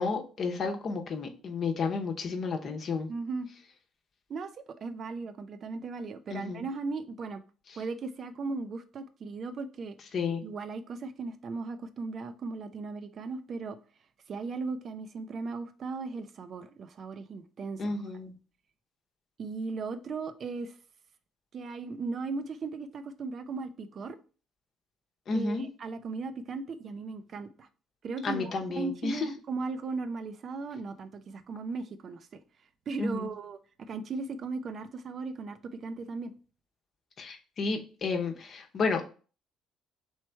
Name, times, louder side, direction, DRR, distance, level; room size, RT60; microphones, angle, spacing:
voice 1, 0.0-3.1 6.3-6.6 10.1-10.4 17.8-18.3 25.3-25.6 28.2-29.3 33.0-33.3 37.2-39.1, left 4 dB, 55° left, 0.8 m, -31 dB
voice 2, 3.1-3.5 4.3-4.5 4.8-7.4 7.8-10.0 10.4-13.8 14.3-18.0 19.4-20.7 21.5-24.2 25.3-27.7 28.0-32.4 32.9-36.3, right 4 dB, 50° right, 0.5 m, -37 dB
3.3 x 3.2 x 4.3 m
hypercardioid pair, 65°, 0 cm